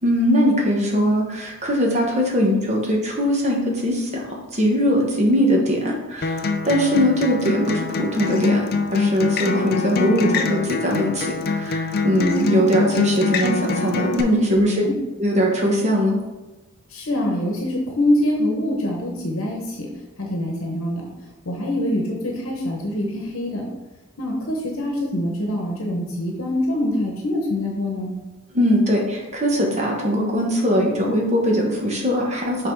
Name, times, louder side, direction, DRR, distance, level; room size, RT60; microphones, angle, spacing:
voice 1, 0.0-8.6 8.9-14.9 15.2-16.2 28.5-32.7, equal, 30° right, -1 dB, 1.2 m, -21 dB
Acoustic guitar, 6.2-14.2, left 3 dB, 45° left, 0.4 m, -24 dB
voice 2, 14.5-14.9 16.9-19.9 20.2-21.1 21.4-23.6 24.2-28.1, left 1 dB, 70° left, 0 dB, 1.0 m, -24 dB
5.7 x 3.6 x 4.6 m, 1.1 s
head